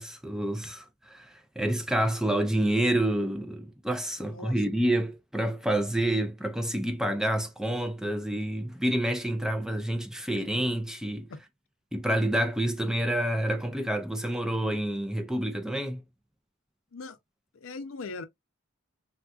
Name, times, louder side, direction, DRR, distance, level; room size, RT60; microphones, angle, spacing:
voice 1, 0.0-11.3 11.9-16.0, right 1 dB, 5° right, 0.4 m, -28 dB
voice 2, 4.2-4.6 11.3-11.4 16.9-17.2 17.5-18.2, left 3 dB, 70° left, 0.6 m, -40 dB
3.6 x 2.3 x 2.4 m
head